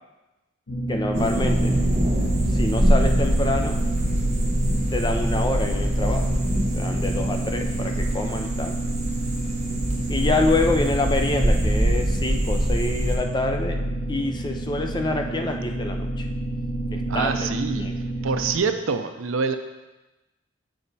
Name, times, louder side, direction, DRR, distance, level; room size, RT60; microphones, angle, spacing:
sound 1, 0.7-18.6, right 1 dB, 85° left, 1.1 m, -29 dB
voice 1, 0.9-1.7 2.5-3.8 4.9-6.3 6.7-8.8 10.1-13.8 14.1-16.2 16.9-17.5 17.8-17.9, left 2 dB, 20° left, 4 dB, 0.5 m, -26 dB
sound 2, 1.1-13.2, equal, 35° right, 1.1 m, -24 dB
voice 2, 17.1-17.9 18.2-19.6, right 5 dB, 80° right, 8 dB, 0.5 m, -25 dB
7.8 x 4.3 x 4.1 m, 1.1 s
head